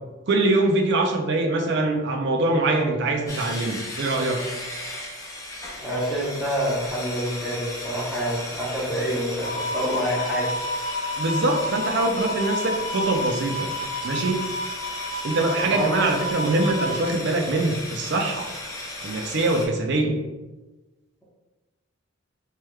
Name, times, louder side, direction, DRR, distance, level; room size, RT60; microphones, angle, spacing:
voice 1, 0.3-4.4 11.2-13.7 14.0-14.4 15.2-18.5 19.0-20.2, right 2 dB, 55° right, 2 dB, 0.4 m, -23 dB
sound 1, 3.3-19.7, left 1 dB, 15° left, 0.4 m, -36 dB
voice 2, 5.8-10.5 15.6-16.1, equal, ahead, -9 dB, 0.8 m, -27 dB
sound 2, 9.4-17.0, left 1 dB, 55° left, 1.1 m, -31 dB
3.2 x 3.1 x 2.3 m, 1.2 s
head